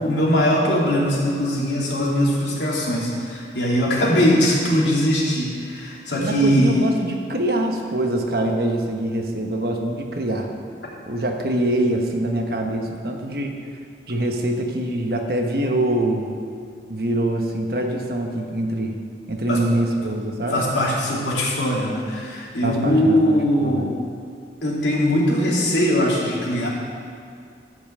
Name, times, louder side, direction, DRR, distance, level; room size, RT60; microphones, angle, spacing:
voice 1, 0.0-7.0 19.5-19.6 20.5-24.0 24.6-26.7, equal, 90° left, -5 dB, 2.9 m, -20 dB
voice 2, 6.2-10.5 11.1-13.6 14.1-16.3 16.9-19.0 19.3-20.6 22.6-23.2 23.6-23.9, right 1 dB, 60° right, 2 dB, 1.2 m, -24 dB
13.5 x 5.6 x 7.6 m, 2.2 s
head